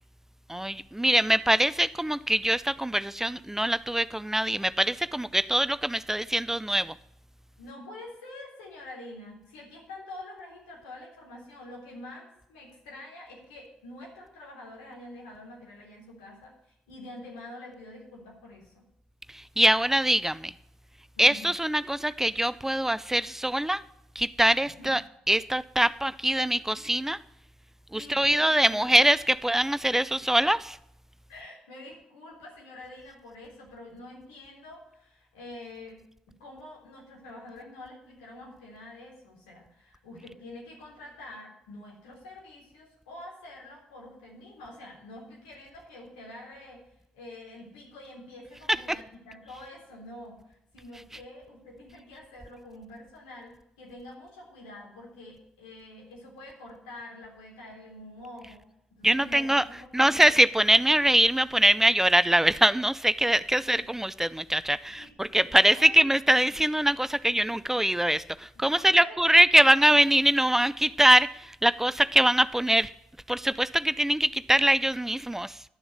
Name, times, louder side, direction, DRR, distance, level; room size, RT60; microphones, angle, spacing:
voice 1, 0.5-6.9 19.3-20.5 21.2-23.8 24.2-25.0 25.3-27.2 27.9-30.8 59.0-59.6 59.9-72.9 73.3-75.6, right 1 dB, 10° right, 0.4 m, -23 dB
voice 2, 7.6-18.8 21.2-21.5 24.6-24.9 27.9-28.9 31.3-36.0 36.3-46.9 47.1-58.7 59.0-60.4 63.6-63.9 64.9-66.0 68.5-69.2, left 1 dB, 80° left, 3.6 m, -46 dB
11.5 x 7.0 x 8.0 m
figure-of-eight pair, 40°, 4 cm